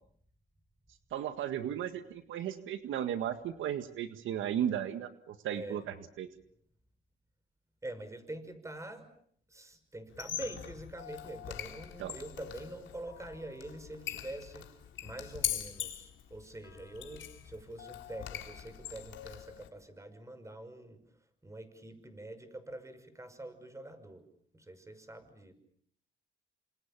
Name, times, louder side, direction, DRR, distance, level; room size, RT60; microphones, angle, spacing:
voice 1, 1.1-6.3 12.0-12.1, right 10 dB, 80° right, 10 dB, 1.8 m, -35 dB
voice 2, 5.5-5.8 7.8-9.1 9.5-14.7 15.0-21.0 21.4-24.2 24.5-25.5, right 1 dB, 15° right, 10 dB, 6.0 m, -45 dB
Squeak, 10.1-19.7, left 11 dB, 75° left, 3.5 m, -42 dB
28.5 x 27.0 x 7.5 m, 0.63 s
cardioid pair, 90°, 20 cm